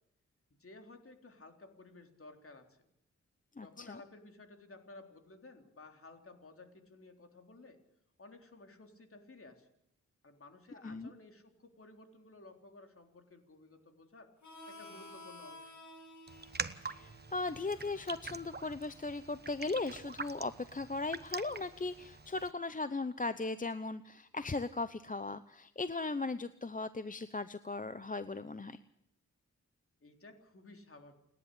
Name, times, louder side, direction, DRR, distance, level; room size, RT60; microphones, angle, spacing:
voice 1, 0.6-2.9 3.6-7.8 8.2-9.7 10.2-14.3 14.7-15.7 30.0-31.1, left 2 dB, 50° left, 5 dB, 3.8 m, -55 dB
voice 2, 3.6-4.0 10.7-11.1 16.8-28.8, left 3 dB, 30° left, 13 dB, 0.8 m, -38 dB
Harmonica, 14.4-19.7, left 2 dB, 75° left, 7.6 m, -54 dB
Raindrop, 16.3-22.5, right 4 dB, 35° right, 1.2 m, -45 dB
29.0 x 11.0 x 8.6 m, 0.79 s
cardioid pair, 65°, 29 cm